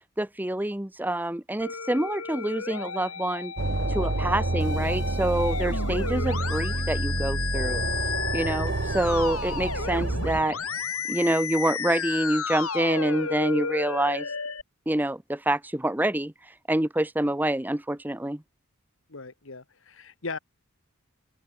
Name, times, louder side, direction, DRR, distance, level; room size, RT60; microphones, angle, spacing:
voice 1, 0.2-3.5 3.9-7.8 8.3-10.6 11.1-14.3 14.9-18.4, right 1 dB, 10° right, 0.7 m, -27 dB
Musical instrument, 1.6-14.6, left 5 dB, 85° left, 4.1 m, -33 dB
sound 1, 3.6-10.4, right 2 dB, 55° right, 1.0 m, -28 dB
voice 2, 19.1-20.4, left 3 dB, 65° left, 1.6 m, -39 dB
open air
head